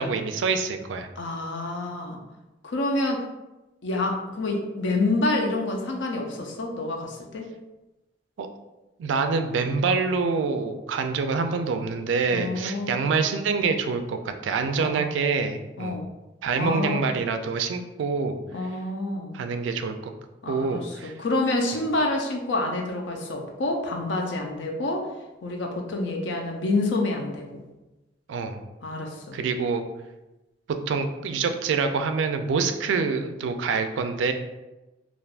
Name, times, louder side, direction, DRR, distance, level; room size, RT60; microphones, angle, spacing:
voice 1, 0.0-1.1 8.4-8.5 9.0-16.0 16.4-18.4 19.3-20.1 20.5-21.1 28.3-28.6 29.3-29.8 30.9-34.3, right 4 dB, 80° right, 7 dB, 0.3 m, -26 dB
voice 2, 1.2-2.2 2.6-3.2 3.8-7.5 12.3-13.1 14.8-15.1 15.8-16.1 16.6-17.1 18.5-19.4 20.4-25.1 25.4-27.6 28.8-29.4, left 2 dB, 80° left, 2 dB, 0.5 m, -28 dB
3.3 x 2.4 x 2.4 m, 1.0 s
head